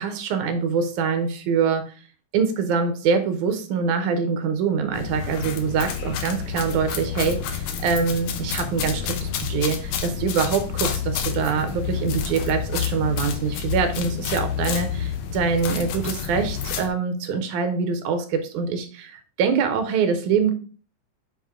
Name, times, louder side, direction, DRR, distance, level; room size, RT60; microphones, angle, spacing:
voice 1, 0.0-1.9 2.3-20.5, right 6 dB, 80° right, 7 dB, 2.4 m, -24 dB
sound 1, 4.9-16.9, left 8 dB, 75° left, 1.8 m, -29 dB
8.2 x 3.7 x 3.7 m, 0.38 s
omnidirectional pair, 3.4 m